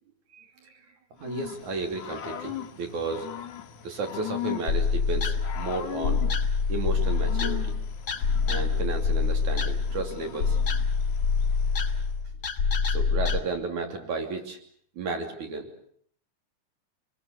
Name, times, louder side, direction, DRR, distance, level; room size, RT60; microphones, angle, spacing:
voice 1, 0.3-0.8 1.2-3.3 3.8-6.2 6.7-7.6 8.5-10.6 12.8-14.6 15.0-15.7, right 3 dB, 75° right, 4 dB, 4.4 m, -33 dB
Growling / Cricket, 1.2-12.2, left 11 dB, 80° left, 3.2 m, -40 dB
sound 1, 4.7-13.4, left 5 dB, 55° left, 3.4 m, -26 dB
28.0 x 21.0 x 8.2 m, 0.63 s
omnidirectional pair, 3.4 m